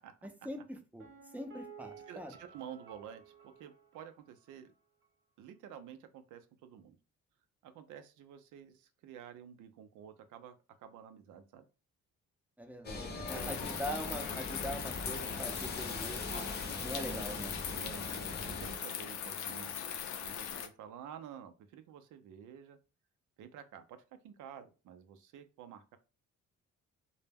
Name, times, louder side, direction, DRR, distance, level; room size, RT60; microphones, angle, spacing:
voice 1, 0.4-1.1 1.3-2.3 12.6-16.5 16.8-17.5, equal, 5° right, 4 dB, 0.5 m, -42 dB
Piano, 1.0-4.8 5.0-5.1, right 6 dB, 45° right, 0.7 m, -55 dB
voice 2, 2.1-4.7 5.4-7.0 7.6-11.6 13.1-13.7 16.9-17.3 17.7-19.9 20.2-22.8 23.4-26.0, right 9 dB, 80° right, 9 dB, 0.5 m, -51 dB
sound 1, 12.8-18.8, left 2 dB, 35° left, 0.6 m, -41 dB
sound 2, 13.3-20.7, left 9 dB, 70° left, 0.5 m, -40 dB
2.1 x 2.1 x 3.3 m, 0.32 s
cardioid pair, 90°, 30 cm